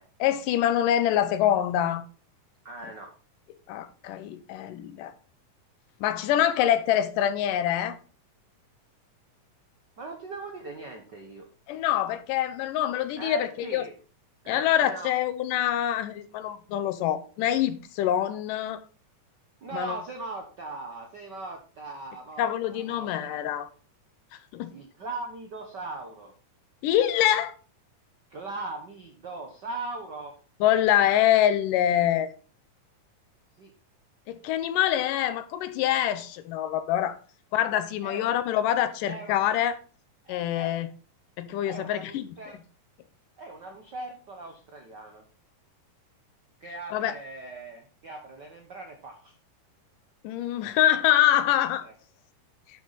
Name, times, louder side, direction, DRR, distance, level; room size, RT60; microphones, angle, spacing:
voice 1, 0.2-2.0 3.7-5.1 6.0-8.0 11.7-13.8 14.5-18.8 19.7-20.0 22.4-23.7 24.5-24.7 26.8-27.5 30.6-32.3 34.3-37.2 37.5-39.8 40.3-40.9 41.4-42.4 46.9-47.1 50.2-51.9, left 11 dB, 90° left, 2.4 m, -25 dB
voice 2, 2.6-3.1 10.0-11.5 13.2-13.9 14.4-15.1 19.6-23.4 24.7-26.3 28.3-30.3 33.6-33.7 38.0-38.4 39.0-39.4 40.2-40.8 41.6-42.6 43.4-45.2 46.6-49.3 51.8-51.9, right 2 dB, 70° right, 1.0 m, -39 dB
9.8 x 6.3 x 4.1 m
omnidirectional pair, 3.7 m